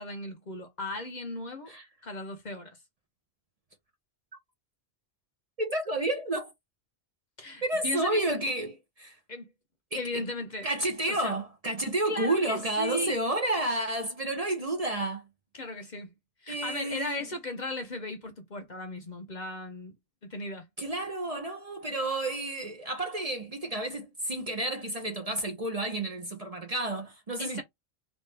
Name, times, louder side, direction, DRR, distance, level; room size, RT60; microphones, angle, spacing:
voice 1, 0.0-1.7 2.0-2.8 7.4-8.3 9.3-9.5 9.9-10.7 11.1-11.3 12.1-13.2 15.5-16.1 16.4-19.9 20.2-20.7 27.4-27.6, left 2 dB, 45° left, 0.9 m, -36 dB
voice 2, 5.6-6.5 7.6-9.2 9.9-10.3 10.6-15.2 16.5-17.2 20.8-27.6, right 1 dB, 40° right, 0.8 m, -31 dB
3.5 x 2.5 x 3.3 m
omnidirectional pair, 1.2 m